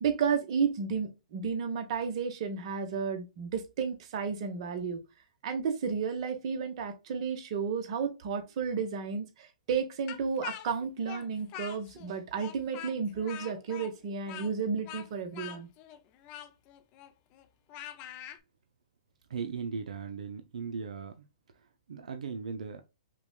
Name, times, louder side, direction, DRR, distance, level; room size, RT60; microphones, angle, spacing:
voice 1, 0.0-5.0 5.4-15.7, right 6 dB, 50° right, 0.9 m, -32 dB
Speech, 10.1-12.1 12.4-18.4, left 11 dB, 30° left, 0.4 m, -44 dB
voice 2, 19.3-21.3 21.9-22.8, right 5 dB, 85° right, 0.5 m, -37 dB
5.8 x 2.2 x 2.2 m
hypercardioid pair, 140°, 4 cm